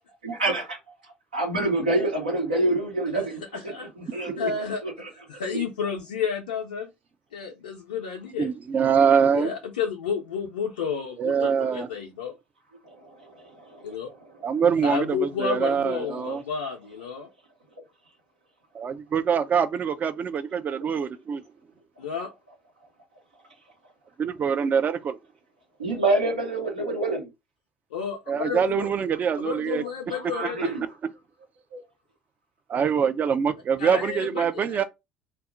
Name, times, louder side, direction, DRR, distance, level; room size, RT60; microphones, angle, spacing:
voice 1, 0.2-5.1 5.5-5.6 12.8-14.0 14.3-14.5 16.0-16.2 25.8-27.3 28.4-28.8 30.1-30.8 31.7-31.8, right 2 dB, 85° right, 0.9 m, -28 dB
voice 2, 3.5-3.9 4.4-4.8 5.3-6.9 7.3-8.5 9.3-12.3 13.8-14.1 14.8-17.3 22.0-22.3 27.9-28.9 29.4-30.7 33.8-34.8, left 6 dB, 80° left, 0.4 m, -31 dB
voice 3, 8.4-9.5 11.2-11.9 14.4-16.4 18.7-21.4 24.2-25.2 28.3-29.8 32.7-34.8, right 7 dB, 40° right, 0.4 m, -24 dB
2.2 x 2.0 x 3.7 m
figure-of-eight pair, 60°, 5 cm